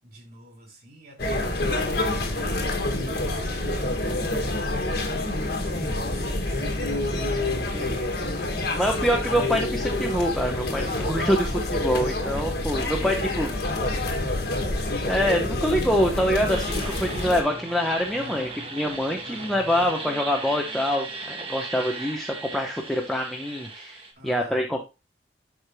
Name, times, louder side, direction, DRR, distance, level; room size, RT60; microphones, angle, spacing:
voice 1, 0.0-1.6 2.1-4.8 5.0-9.1 12.1-12.5 13.0-13.6 13.9-14.8 18.1-18.7 19.2-19.6 24.1-24.7, equal, 50° right, -2 dB, 3.2 m, -49 dB
sound 1, 1.2-17.4, left 2 dB, 55° left, 1.7 m, -27 dB
voice 2, 7.7-8.0 8.7-13.5 15.1-24.8, equal, ahead, 0 dB, 0.8 m, -25 dB
sound 2, 16.5-24.1, right 3 dB, 30° right, 1.4 m, -37 dB
12.0 x 5.0 x 2.2 m, 0.27 s
head